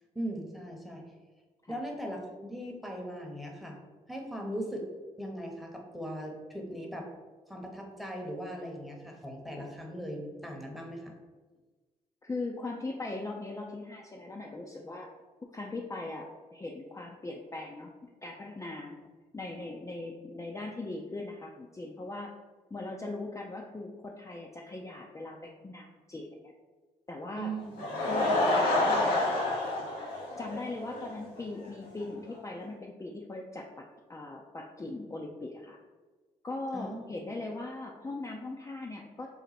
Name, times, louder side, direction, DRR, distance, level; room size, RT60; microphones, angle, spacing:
voice 1, 0.1-1.1 1.7-3.8 4.1-4.9 5.2-7.1 7.5-11.1 27.4-27.7 36.7-37.1, right 1 dB, ahead, 1 dB, 0.9 m, -39 dB
voice 2, 12.2-15.1 15.5-17.9 18.2-19.0 19.3-22.3 22.7-26.5 27.1-27.5 28.0-29.4 30.4-33.8 34.1-35.8 36.4-39.3, left 2 dB, 20° left, -1 dB, 0.5 m, -39 dB
Laughter / Crowd, 27.6-31.1 31.4-31.5 32.0-32.1 32.3-32.4, left 2 dB, 85° left, 0.8 m, -28 dB
4.0 x 2.1 x 4.1 m, 1.3 s
supercardioid pair, 55°, 15 cm